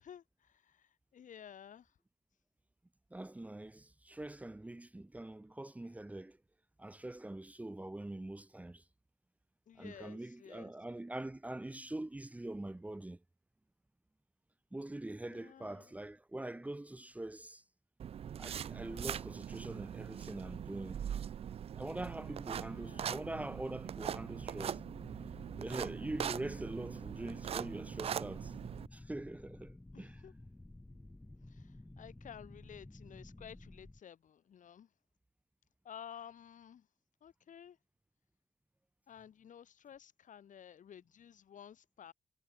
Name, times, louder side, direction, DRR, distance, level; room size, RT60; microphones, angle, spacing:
voice 1, 0.0-1.9 9.7-10.7 15.2-15.9 22.6-23.2 29.9-30.3 31.4-34.9 35.8-36.9 37.2-37.8 39.1-42.1, left 9 dB, 70° left, 5.7 m, -53 dB
voice 2, 3.1-6.4 6.8-8.8 9.8-13.2 14.7-17.6 18.4-21.0 21.7-24.8 25.6-28.5 28.9-30.2, right 1 dB, 10° right, 1.5 m, -44 dB
sound 1, 18.0-28.9, right 9 dB, 45° right, 0.3 m, -41 dB
sound 2, 24.0-34.0, left 2 dB, 10° left, 1.3 m, -53 dB
wide cardioid pair, 145°, 14 cm